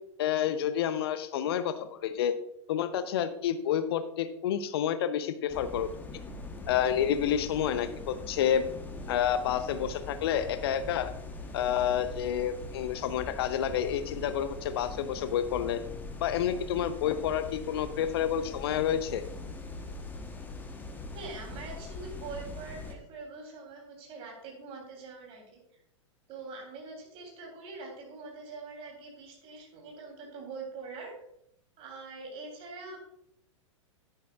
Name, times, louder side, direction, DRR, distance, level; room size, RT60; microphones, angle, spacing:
voice 1, 0.2-2.4 2.7-5.9 6.7-8.7 9.1-11.1 11.5-15.8 16.2-19.2, left 9 dB, 50° left, 12 dB, 0.7 m, -29 dB
sound 1, 5.5-23.0, left 2 dB, 10° left, 1.1 m, -42 dB
voice 2, 21.1-25.8 26.3-31.1 31.8-33.0, right 3 dB, 35° right, 1 dB, 3.3 m, -44 dB
10.5 x 10.0 x 2.4 m, 0.74 s
figure-of-eight pair, 100°, 16 cm